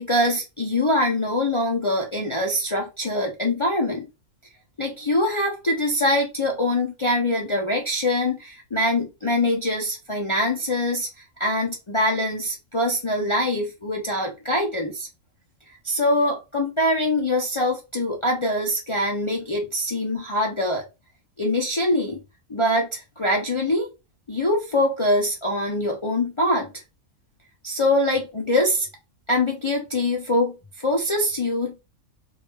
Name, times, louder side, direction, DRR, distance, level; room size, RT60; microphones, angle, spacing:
voice 1, 0.0-4.1 4.8-11.1 11.4-15.1 15.7-20.8 21.4-22.2 22.5-23.9 24.3-26.7 27.6-28.9 29.3-31.8, left 1 dB, 55° left, 0.3 m, -23 dB
3.0 x 2.5 x 3.3 m
omnidirectional pair, 1.4 m